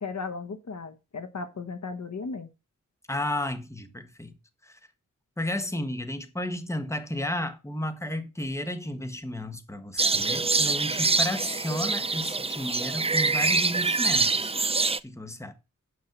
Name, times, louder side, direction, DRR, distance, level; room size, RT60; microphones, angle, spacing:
voice 1, 0.0-2.5, left 4 dB, 60° left, 1.1 m, -36 dB
voice 2, 3.1-4.3 4.6-4.8 5.4-14.6 15.0-15.5, left 1 dB, 10° left, 1.4 m, -33 dB
sound 1, 10.0-15.0, right 3 dB, 20° right, 0.4 m, -25 dB
9.5 x 5.6 x 6.0 m
wide cardioid pair, 75°, 32 cm